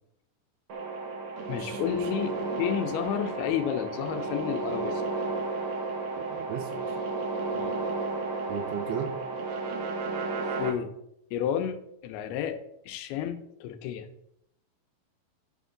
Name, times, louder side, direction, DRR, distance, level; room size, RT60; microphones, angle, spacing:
sound 1, 0.7-10.7, right 3 dB, 60° right, 2.0 m, -33 dB
voice 1, 1.5-5.0 7.5-7.8 10.6-10.9 11.3-12.6 12.9-14.1, left 9 dB, 90° left, 8 dB, 2.7 m, -31 dB
voice 2, 2.2-2.5 6.2-7.0 8.5-9.2, right 5 dB, 85° right, 7 dB, 2.8 m, -36 dB
8.9 x 6.1 x 3.7 m, 0.78 s
omnidirectional pair, 4.3 m